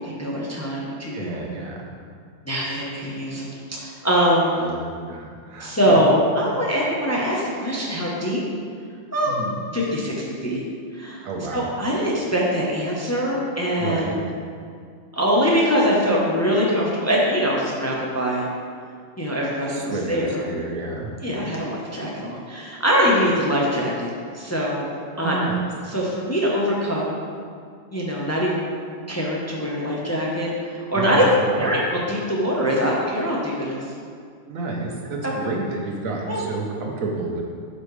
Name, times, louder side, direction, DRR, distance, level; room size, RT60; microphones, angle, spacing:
voice 1, 0.0-1.4 2.5-4.6 5.6-8.4 9.1-9.3 9.7-10.6 10.9-11.3 11.5-14.2 15.1-18.5 19.2-19.8 20.1-20.4 21.2-24.1 24.3-24.9 25.2-25.4 25.9-27.2 27.9-28.7 29.1-31.2 31.6-33.8 35.2-35.3 36.3-36.4, equal, 15° left, -4 dB, 0.7 m, -23 dB
voice 2, 1.1-1.8 4.5-6.0 9.2-9.6 11.2-11.7 13.8-14.2 19.7-21.1 23.2-23.3 25.2-25.6 30.9-31.7 34.5-37.4, right 3 dB, 80° right, 0 dB, 1.3 m, -30 dB
8.4 x 5.3 x 3.2 m, 2.2 s
omnidirectional pair, 1.4 m